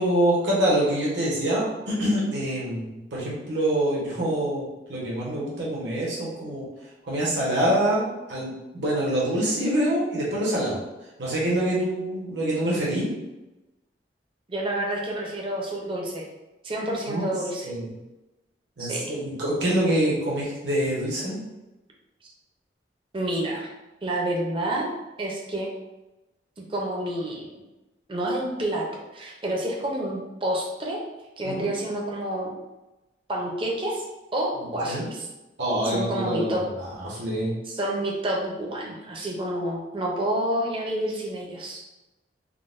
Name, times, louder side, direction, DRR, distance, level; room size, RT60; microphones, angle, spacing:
voice 1, 0.0-6.6 7.1-10.8 11.2-13.1 17.1-17.2 17.6-17.9 18.8-21.4 31.4-31.7 34.8-35.1 35.6-37.5, right 1 dB, 80° right, -6 dB, 1.0 m, -25 dB
voice 2, 14.5-16.3 16.6-17.7 18.8-19.1 23.1-23.7 24.0-24.9 25.2-25.7 26.6-27.6 28.1-31.0 31.4-32.5 33.3-34.0 34.3-35.3 35.8-36.6 37.7-41.8, right 1 dB, 30° right, -1 dB, 0.5 m, -29 dB
3.8 x 2.1 x 2.5 m, 1.0 s
head